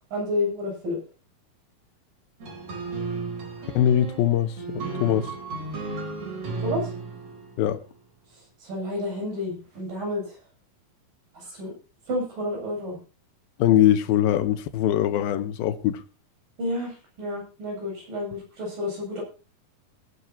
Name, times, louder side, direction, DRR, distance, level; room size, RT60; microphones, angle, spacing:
voice 1, 0.1-1.0 6.6-6.9 8.6-10.4 11.3-11.7 12.1-13.0 16.6-19.2, left 1 dB, 65° right, 9.7 m, -30 dB
sound 1, 2.4-7.8, right 4 dB, 50° right, 4.8 m, -34 dB
voice 2, 3.7-5.3 7.6-7.8 13.6-16.0, left 11 dB, 85° left, 2.8 m, -22 dB
19.5 x 11.0 x 2.9 m
omnidirectional pair, 4.2 m